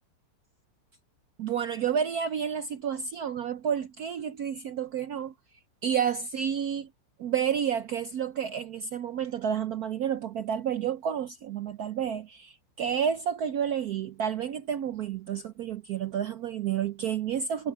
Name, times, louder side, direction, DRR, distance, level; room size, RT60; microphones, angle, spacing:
voice 1, 1.4-5.3 5.8-6.9 7.2-17.7, right 8 dB, 70° right, 0.9 m, -30 dB
omnidirectional pair, 2.3 m